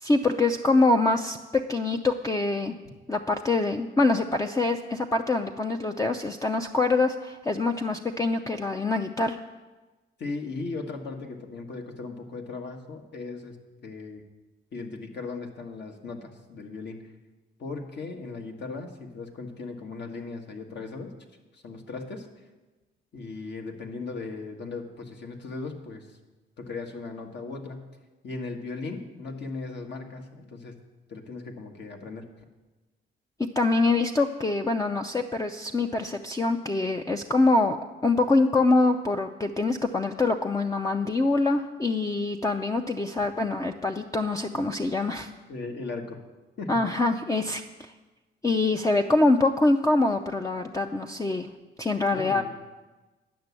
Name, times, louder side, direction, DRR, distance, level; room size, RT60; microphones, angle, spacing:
voice 1, 0.0-2.8 3.1-9.4 33.6-37.8 38.0-45.3 46.7-47.9 48.4-51.5 51.8-52.5, left 2 dB, 15° left, 5 dB, 0.5 m, -24 dB
voice 2, 10.2-13.6 13.8-14.2 14.7-17.0 17.6-21.1 21.5-22.3 23.1-26.2 26.6-27.9 28.2-30.7 31.1-32.2 45.5-46.2 46.6-46.8 52.1-52.5, left 3 dB, 60° left, 3 dB, 1.5 m, -37 dB
10.5 x 6.0 x 8.3 m, 1.2 s
cardioid pair, 90°, 20 cm